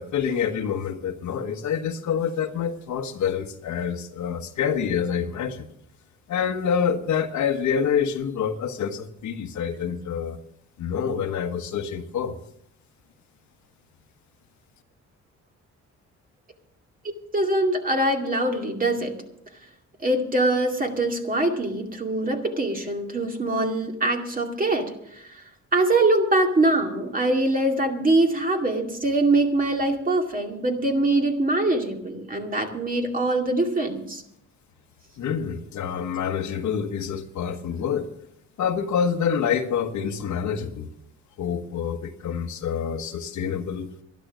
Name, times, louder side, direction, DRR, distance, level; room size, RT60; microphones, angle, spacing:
voice 1, 0.0-5.7 6.3-10.4 10.8-12.3 35.2-38.1 38.6-40.9 41.4-43.9, left 7 dB, 70° left, 6 dB, 1.4 m, -27 dB
voice 2, 17.3-19.1 20.0-25.4 25.7-34.2, right 2 dB, 30° right, 3 dB, 2.3 m, -23 dB
12.0 x 11.5 x 6.2 m, 0.75 s
cardioid pair, 90°, 30 cm